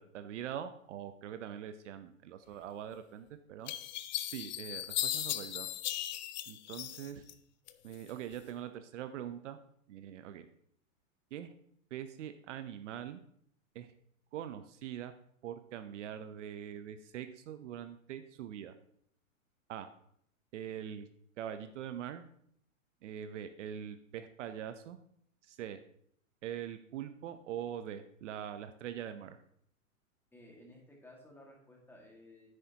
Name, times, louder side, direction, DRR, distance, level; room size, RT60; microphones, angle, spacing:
voice 1, 0.0-3.7 4.3-5.7 6.5-7.2 7.8-9.6 9.9-10.4 11.3-11.5 11.9-13.2 13.7-13.9 14.3-15.1 15.4-18.7 19.7-19.9 20.5-21.1 21.4-22.3 23.0-25.0 25.4-25.8 26.4-29.4, right 10 dB, 60° right, 10 dB, 0.8 m, -43 dB
sound 1, 2.9-3.0 3.7-7.3 7.7-8.4, left 13 dB, 35° left, 0.4 m, -37 dB
voice 2, 30.3-32.5, left 1 dB, 5° left, -1 dB, 1.9 m, -56 dB
10.0 x 7.9 x 2.9 m, 0.67 s
hypercardioid pair, 140°, 41 cm